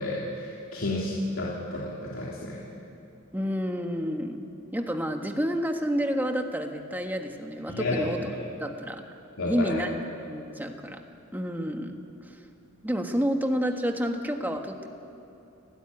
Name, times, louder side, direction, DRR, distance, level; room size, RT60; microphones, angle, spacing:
voice 1, 0.0-2.6 7.7-8.1 9.4-9.8, left 2 dB, 75° left, -5 dB, 3.0 m, -31 dB
voice 2, 3.3-4.4 4.7-8.3 8.6-9.0 9.5-9.9 10.3-11.0 11.3-12.0 12.3-12.4 12.8-14.9, equal, 10° right, 4 dB, 1.5 m, -29 dB
30.0 x 13.0 x 9.8 m, 2.7 s
head